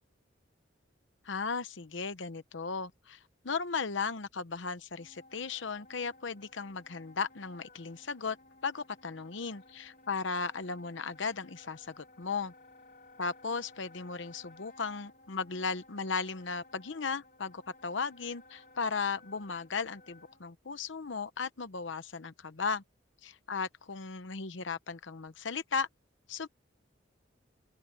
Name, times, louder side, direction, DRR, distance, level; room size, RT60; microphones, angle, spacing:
voice 1, 1.2-3.2 3.4-8.4 8.6-12.5 13.2-22.8 23.2-25.9 26.3-26.5, left 5 dB, 75° left, 0.9 m, -36 dB
Wind instrument woodwind instrument, 4.9-20.4, left 2 dB, 45° left, 3.4 m, -58 dB
open air
head